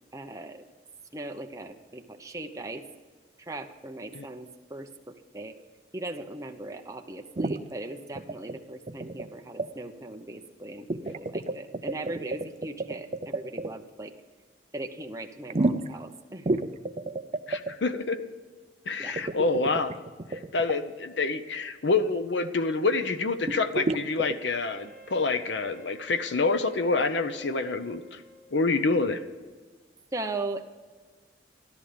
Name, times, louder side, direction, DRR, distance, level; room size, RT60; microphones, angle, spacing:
voice 1, 0.1-0.7 1.1-2.9 3.4-5.6 5.9-14.1 14.7-16.6 19.0-19.3 30.1-30.7, right 2 dB, 20° right, 4 dB, 0.9 m, -39 dB
sound 1, 7.4-7.6 8.2-8.6 8.9-9.3 9.6-9.7 10.9-13.7 15.5-16.0 16.5-17.7 19.2-20.7 23.5-24.3, right 2 dB, 35° right, 0.5 m, -30 dB
voice 2, 17.5-18.2 18.9-20.0 20.3-28.2 28.5-29.2, left 3 dB, 70° left, 11 dB, 0.8 m, -27 dB
Wind instrument woodwind instrument, 24.6-28.9, right 4 dB, 5° left, 3.4 m, -50 dB
13.5 x 13.0 x 5.2 m, 1.5 s
head